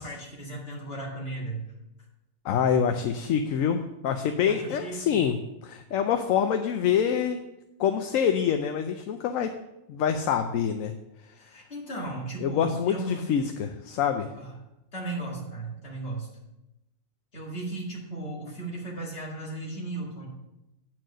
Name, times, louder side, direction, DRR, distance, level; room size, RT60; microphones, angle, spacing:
voice 1, 0.0-1.6 4.5-5.2 11.3-13.2 14.4-14.5 14.9-16.3 17.3-20.3, right 2 dB, 50° left, -3 dB, 2.2 m, -36 dB
voice 2, 2.4-5.4 5.6-7.4 7.8-9.5 9.9-10.9 12.4-14.3, left 8 dB, 85° left, 6 dB, 1.0 m, -26 dB
9.0 x 4.6 x 6.2 m, 0.94 s
omnidirectional pair, 1.4 m